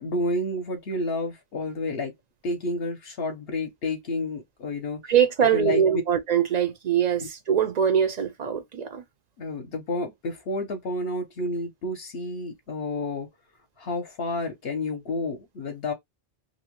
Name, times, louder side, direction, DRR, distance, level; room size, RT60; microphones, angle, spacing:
voice 1, 0.0-2.1 2.4-5.1 5.5-5.8 9.4-13.3 13.8-15.9, left 2 dB, 65° left, 0.8 m, -30 dB
voice 2, 5.1-9.0, right 8 dB, 55° right, 0.5 m, -23 dB
2.7 x 2.0 x 2.9 m
omnidirectional pair, 1.2 m